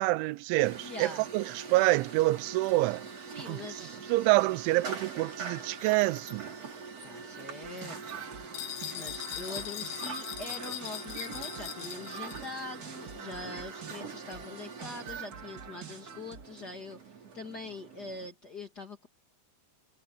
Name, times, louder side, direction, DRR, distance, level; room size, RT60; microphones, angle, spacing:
voice 1, 0.0-3.1 3.5-6.5, right 20 dB, 85° right, 2.8 m, -27 dB
sound 1, 0.6-18.3, right 5 dB, 35° right, 5.1 m, -44 dB
voice 2, 0.8-1.3 3.3-4.0 7.0-8.2 8.9-17.0 17.3-19.1, left 2 dB, 40° left, 1.4 m, -43 dB
sound 2, 7.6-16.6, right 6 dB, 55° right, 1.2 m, -47 dB
sound 3, 8.5-12.7, left 14 dB, 70° left, 2.8 m, -40 dB
omnidirectional pair, 5.6 m